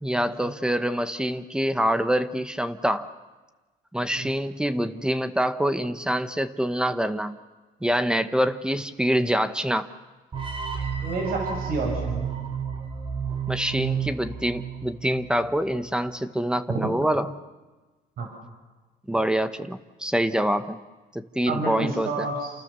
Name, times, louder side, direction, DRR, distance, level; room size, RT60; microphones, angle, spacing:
voice 1, 0.0-3.1 3.9-7.4 7.8-9.9 13.5-17.4 19.1-20.8 21.1-22.3, equal, 5° right, 11 dB, 1.3 m, -25 dB
sound 1, 10.3-15.4, right 6 dB, 30° right, 3.8 m, -31 dB
voice 2, 11.0-12.3 18.2-18.3 21.5-22.5, right 3 dB, 65° right, 1 dB, 6.4 m, -29 dB
29.0 x 28.5 x 7.0 m, 1.2 s
cardioid pair, 110°, 17 cm